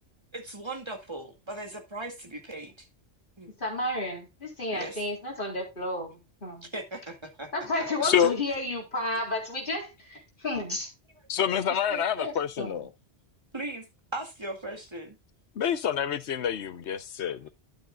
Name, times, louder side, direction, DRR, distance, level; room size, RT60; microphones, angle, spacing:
voice 1, 0.3-2.9 3.4-3.5 4.7-5.0 6.6-7.5 7.8-7.9 13.5-13.9 14.1-15.2, right 2 dB, 25° right, 2.1 m, -38 dB
voice 2, 3.6-6.7 7.5-10.9 11.9-12.9, left 2 dB, 50° left, 4.0 m, -32 dB
voice 3, 8.0-8.4 11.3-12.9 15.6-17.5, left 8 dB, 80° left, 1.1 m, -27 dB
12.0 x 9.3 x 2.4 m
omnidirectional pair, 1.1 m